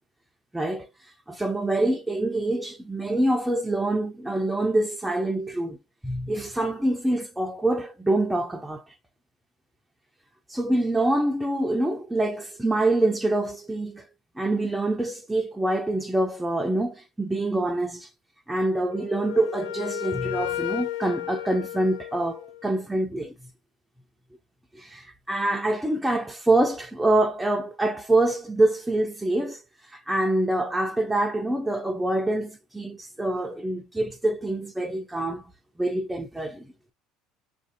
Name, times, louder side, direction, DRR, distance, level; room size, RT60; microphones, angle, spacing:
voice 1, 0.5-5.8 6.0-8.9 10.5-14.1 14.4-18.1 18.5-23.3 24.8-35.4 35.8-36.7, right 2 dB, 5° right, 0.4 m, -25 dB
Wind instrument woodwind instrument, 18.9-22.7, left 14 dB, 85° left, 0.4 m, -33 dB
5.7 x 2.5 x 2.5 m
cardioid pair, 140°, 0 cm